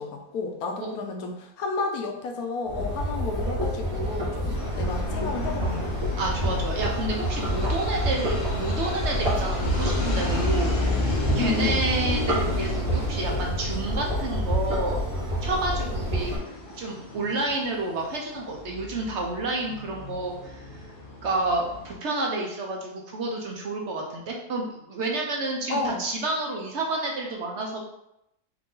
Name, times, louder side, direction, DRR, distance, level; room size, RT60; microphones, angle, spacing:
voice 1, 0.0-5.8 11.3-11.9 25.7-26.0, left 4 dB, 90° left, 3 dB, 1.2 m, -32 dB
sound 1, 2.7-16.4, equal, 90° right, 1.8 m, -28 dB
sound 2, 4.5-21.9, left 1 dB, 45° left, 0.9 m, -33 dB
voice 2, 6.2-15.0 15.4-16.3 16.7-20.7 21.2-27.8, right 2 dB, 60° right, 0 dB, 0.9 m, -30 dB
4.6 x 2.5 x 3.8 m, 0.82 s
omnidirectional pair, 1.5 m